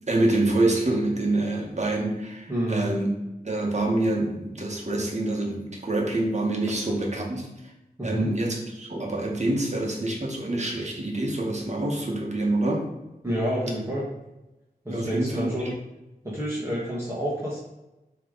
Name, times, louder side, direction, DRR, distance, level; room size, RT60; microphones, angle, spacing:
voice 1, 0.1-3.1 3.4-7.5 8.0-12.9 14.9-15.7, right 2 dB, 45° right, 0 dB, 1.5 m, -26 dB
voice 2, 2.5-2.9 8.0-8.3 13.2-14.1 14.9-15.8 16.2-17.6, equal, 15° right, -8 dB, 1.8 m, -28 dB
7.2 x 3.4 x 4.1 m, 0.97 s
wide cardioid pair, 75°, 16 cm